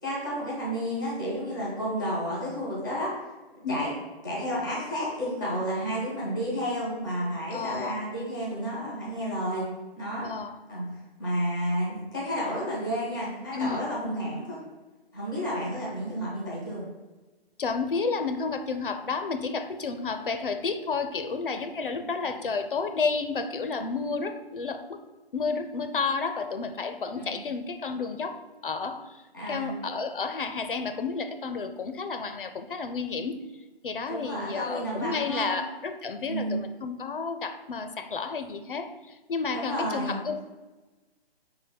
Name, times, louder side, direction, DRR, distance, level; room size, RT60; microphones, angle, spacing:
voice 1, 0.0-3.1 3.5-3.9 4.2-9.6 10.0-10.3 10.7-10.8 11.2-14.6 15.1-16.8 21.9-22.1 27.2-27.4 29.3-29.8 34.1-35.6 36.3-36.6 39.5-40.2, equal, 5° right, -6 dB, 0.6 m, -31 dB
voice 2, 7.5-8.0 10.2-10.6 13.5-13.8 17.6-25.0 25.3-33.4 33.8-40.4, left 4 dB, 60° left, 9 dB, 0.5 m, -31 dB
4.9 x 3.8 x 5.8 m, 1.2 s
hypercardioid pair, 175°, 31 cm